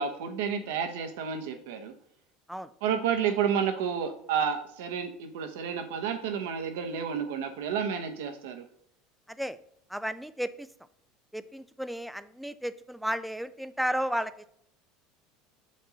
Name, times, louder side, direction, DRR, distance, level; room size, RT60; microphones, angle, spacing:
voice 1, 0.0-1.9 2.8-8.6, right 7 dB, 80° right, 7 dB, 1.0 m, -30 dB
voice 2, 9.3-9.6 9.9-10.7 11.3-14.5, equal, ahead, 13 dB, 0.5 m, -33 dB
6.7 x 5.3 x 3.9 m, 0.72 s
supercardioid pair, 95°, 0 cm